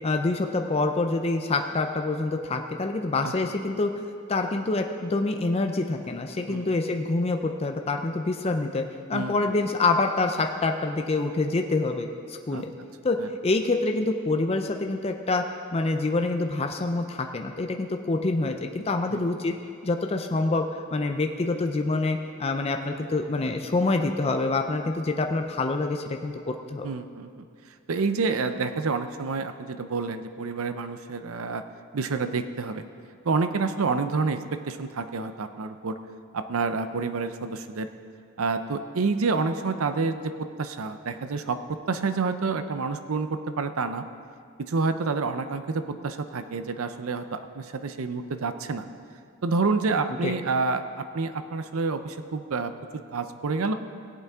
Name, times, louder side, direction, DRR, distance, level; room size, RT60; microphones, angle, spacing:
voice 1, 0.0-8.8 9.1-12.7 13.0-13.2 13.4-19.5 19.8-26.9 50.1-50.3, left 3 dB, 25° left, 4 dB, 0.5 m, -26 dB
voice 2, 9.1-9.6 12.5-12.6 13.2-13.3 19.1-19.2 26.8-27.4 27.9-31.6 31.9-32.8 33.2-36.0 36.3-37.9 38.4-44.0 44.6-48.9 49.4-53.7, right 4 dB, 70° right, 10 dB, 0.6 m, -28 dB
17.0 x 8.1 x 3.6 m, 2.3 s
head